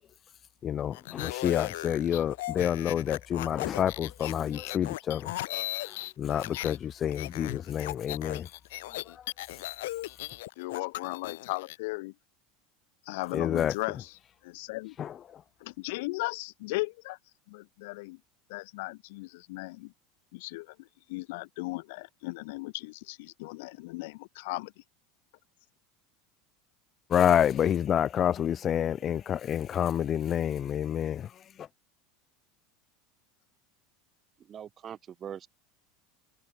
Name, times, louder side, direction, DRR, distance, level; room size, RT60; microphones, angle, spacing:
voice 1, 0.6-8.5 13.3-13.7 15.0-15.1 27.1-31.3, left 9 dB, 20° left, 0.8 m, -28 dB
sound 1, 0.9-6.8 7.1-11.8, left 18 dB, 75° left, 1.6 m, -37 dB
voice 2, 10.6-12.1 13.0-14.9 15.6-17.2 17.5-18.2 18.5-19.9 20.3-24.7, left 24 dB, 60° left, 0.9 m, -37 dB
voice 3, 34.4-35.5, right 9 dB, 20° right, 3.3 m, -42 dB
supercardioid pair, 175°, 0 cm